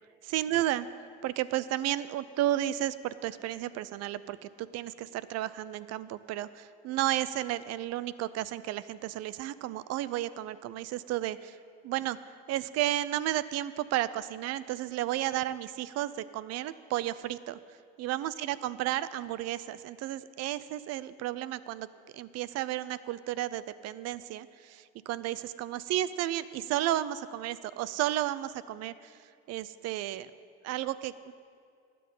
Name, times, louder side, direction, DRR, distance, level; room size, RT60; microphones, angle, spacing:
voice 1, 0.2-0.9 1.2-11.6 11.8-12.2 12.5-17.6 18.0-21.9 22.1-29.2 29.5-30.3 30.6-31.3, right 13 dB, 60° right, 16 dB, 0.6 m, -33 dB
15.5 x 10.0 x 5.5 m, 2.2 s
supercardioid pair, 105°, 30 cm